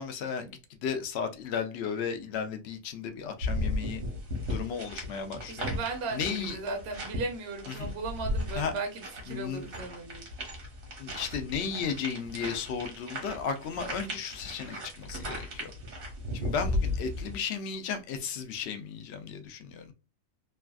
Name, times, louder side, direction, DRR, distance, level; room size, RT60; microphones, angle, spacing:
voice 1, 0.0-4.0 4.4-5.7 6.1-6.6 7.7-7.9 8.5-8.7 9.3-9.7 11.0-15.7 16.3-19.9, left 6 dB, 65° left, 0.7 m, -34 dB
sound 1, 3.4-17.4, left 1 dB, 75° right, 1.5 m, -36 dB
voice 2, 5.5-10.3, right 3 dB, 55° right, 0.9 m, -36 dB
3.3 x 2.3 x 2.3 m
omnidirectional pair, 1.4 m